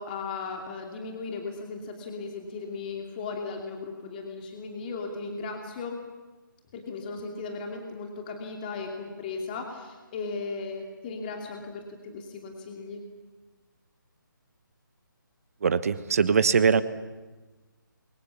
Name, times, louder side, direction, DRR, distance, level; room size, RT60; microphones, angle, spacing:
voice 1, 0.0-6.0 6.7-13.0, left 4 dB, 25° left, 2 dB, 2.7 m, -36 dB
voice 2, 15.6-16.8, right 6 dB, 45° right, 14 dB, 1.2 m, -22 dB
28.5 x 23.5 x 7.3 m, 1.2 s
figure-of-eight pair, 150°, 11 cm